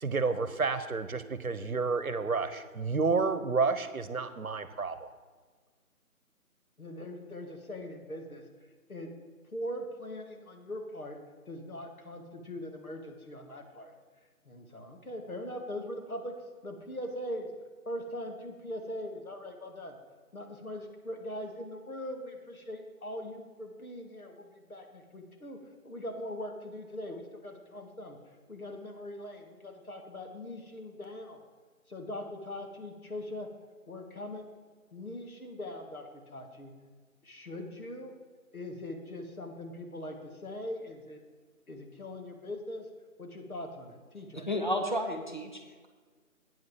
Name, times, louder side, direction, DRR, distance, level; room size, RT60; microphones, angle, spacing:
voice 1, 0.0-5.1, right 4 dB, 70° right, 13 dB, 0.9 m, -30 dB
voice 2, 6.8-8.4 8.9-9.1 9.5-11.2 11.5-13.9 14.5-16.4 16.6-17.5 17.9-20.0 20.3-25.6 25.8-28.2 28.5-31.4 31.9-33.5 33.9-34.5 34.9-36.7 37.2-38.1 38.5-41.2 41.7-42.9 43.2-44.5, left 1 dB, 70° left, 3 dB, 2.0 m, -41 dB
voice 3, 44.3-45.9, equal, 35° left, 4 dB, 0.8 m, -32 dB
8.8 x 6.2 x 7.5 m, 1.5 s
figure-of-eight pair, 175°, 44 cm